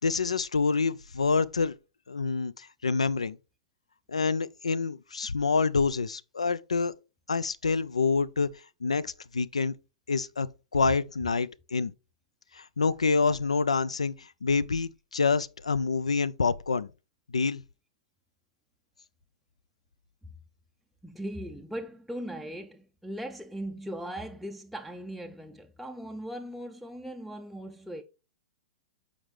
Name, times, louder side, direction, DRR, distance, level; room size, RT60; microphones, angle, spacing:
voice 1, 0.0-1.7 2.1-3.4 4.1-6.9 7.3-8.5 8.8-9.7 10.1-10.5 10.7-11.9 12.5-16.9 17.3-17.6, left 4 dB, 75° left, 0.3 m, -27 dB
voice 2, 21.0-28.0, right 1 dB, ahead, 0.4 m, -39 dB
7.2 x 5.1 x 3.1 m
figure-of-eight pair, 105°, 3 cm